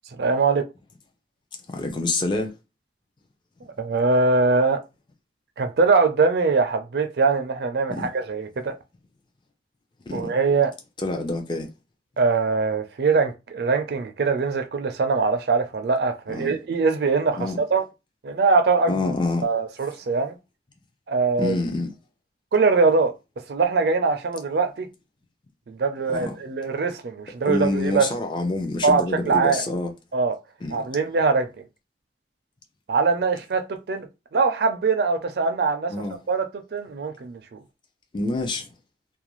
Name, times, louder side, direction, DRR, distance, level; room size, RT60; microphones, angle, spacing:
voice 1, 0.1-0.6 3.8-4.8 5.6-8.7 10.1-10.7 12.2-17.8 18.2-19.0 19.4-20.4 21.1-21.6 22.5-23.1 23.5-24.9 25.7-28.1 28.8-29.6 30.1-30.3 30.7-31.5 32.9-35.9 36.3-37.6, right 4 dB, 60° right, 0.4 m, -22 dB
voice 2, 1.7-2.5 7.9-8.1 10.1-10.3 11.0-11.7 16.3-16.5 17.4-17.6 18.9-19.4 21.4-21.9 26.1-26.3 27.4-29.9 30.6-30.8 35.9-36.2 38.1-38.7, left 2 dB, 25° left, 0.4 m, -27 dB
2.4 x 2.2 x 3.0 m
head